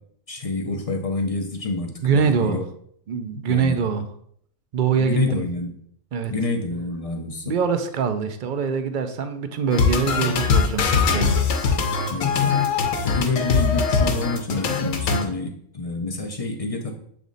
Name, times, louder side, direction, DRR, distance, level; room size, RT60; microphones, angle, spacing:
voice 1, 0.3-2.6 3.5-3.8 4.9-5.8 6.3-7.5 12.1-12.6 13.0-16.9, left 3 dB, 40° left, 4 dB, 0.5 m, -27 dB
voice 2, 2.0-2.6 3.1-4.0 4.7-5.4 6.1-6.3 7.4-11.4, right 6 dB, 55° right, 8 dB, 0.5 m, -24 dB
sound 1, 9.7-15.3, left 5 dB, 80° left, 1.1 m, -21 dB
7.2 x 3.5 x 3.9 m, 0.65 s
omnidirectional pair, 1.4 m